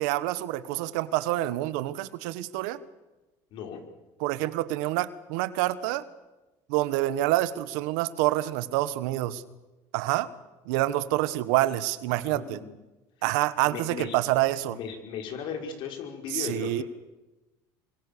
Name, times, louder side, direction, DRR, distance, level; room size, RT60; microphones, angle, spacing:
voice 1, 0.0-2.8 4.2-6.0 6.7-9.4 9.9-10.3 10.6-12.6 13.2-14.8 16.3-16.8, right 16 dB, 85° right, 14 dB, 1.5 m, -27 dB
voice 2, 3.5-3.8 12.3-12.7 13.6-14.2 14.7-16.8, left 7 dB, 60° left, 4 dB, 5.7 m, -36 dB
28.0 x 24.5 x 7.1 m, 1.1 s
cardioid pair, 115°, 9 cm